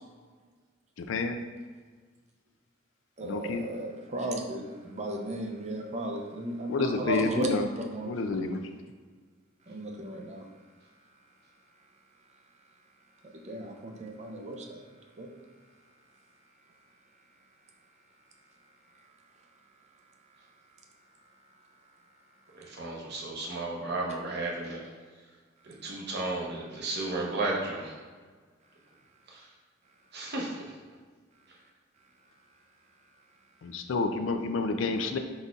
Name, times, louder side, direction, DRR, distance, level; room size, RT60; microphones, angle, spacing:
voice 1, 1.0-1.4 3.2-3.7 6.7-7.7 8.0-8.6 33.6-35.2, left 3 dB, 70° left, 7 dB, 0.4 m, -29 dB
voice 2, 3.2-7.5 7.9-8.1 9.7-10.4 13.4-14.8 15.2-15.3, right 1 dB, 35° right, 2 dB, 0.5 m, -35 dB
voice 3, 22.5-24.8 25.6-27.9 29.3-29.4 30.1-30.6, right 2 dB, 55° right, -2 dB, 0.9 m, -33 dB
5.1 x 4.1 x 2.4 m, 1.5 s
head